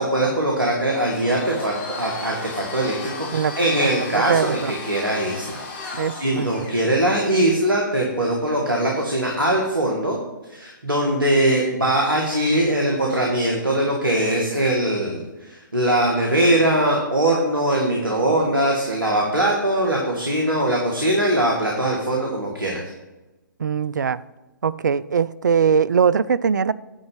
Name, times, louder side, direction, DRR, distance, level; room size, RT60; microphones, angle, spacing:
voice 1, 0.0-10.2 10.5-22.8, right 1 dB, 80° right, -1 dB, 1.8 m, -21 dB
Domestic sounds home sounds, 1.0-6.9, left 3 dB, 35° left, 1.4 m, -35 dB
voice 2, 3.8-4.7 5.9-6.7 23.6-24.2 24.6-26.7, right 6 dB, 60° right, 17 dB, 0.4 m, -21 dB
9.9 x 4.0 x 7.4 m, 1.1 s
figure-of-eight pair, 130°, 11 cm